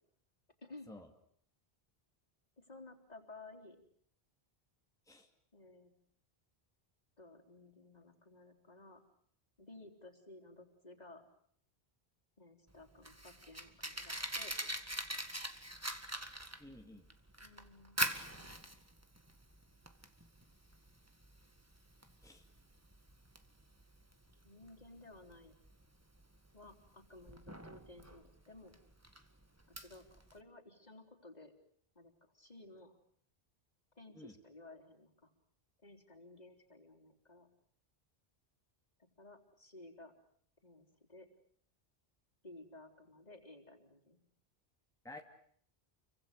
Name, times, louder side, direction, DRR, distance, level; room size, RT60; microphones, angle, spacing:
voice 1, 0.6-0.9 2.6-3.8 5.5-5.9 7.2-9.0 9.6-11.3 12.4-14.6 17.4-18.0 18.4-18.5 24.4-25.5 26.5-28.8 29.7-30.0 30.3-31.5 32.0-32.9 34.0-35.3 35.8-37.5 39.2-40.1 40.6-41.3 42.4-44.2, left 2 dB, 40° left, 2 dB, 3.9 m, -56 dB
Fire, 12.7-30.4, right 1 dB, 15° right, 1.9 m, -44 dB
voice 2, 16.6-17.0 22.2-22.4 34.1-34.4 45.0-45.2, left 2 dB, 5° left, 3 dB, 2.5 m, -52 dB
29.5 x 24.5 x 6.8 m, 0.63 s
omnidirectional pair, 1.0 m